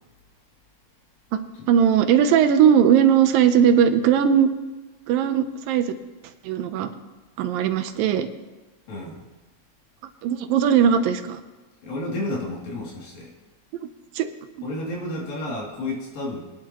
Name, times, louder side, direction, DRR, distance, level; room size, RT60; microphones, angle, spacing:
voice 1, 1.7-4.5 5.1-5.9 6.4-6.9 7.4-8.3 10.2-11.4 14.2-14.3, right 8 dB, 80° right, 9 dB, 2.4 m, -18 dB
voice 2, 8.9-9.2 11.8-13.3 14.6-16.4, left 1 dB, 70° left, -3 dB, 4.5 m, -31 dB
23.5 x 10.5 x 3.0 m, 1.2 s
omnidirectional pair, 4.1 m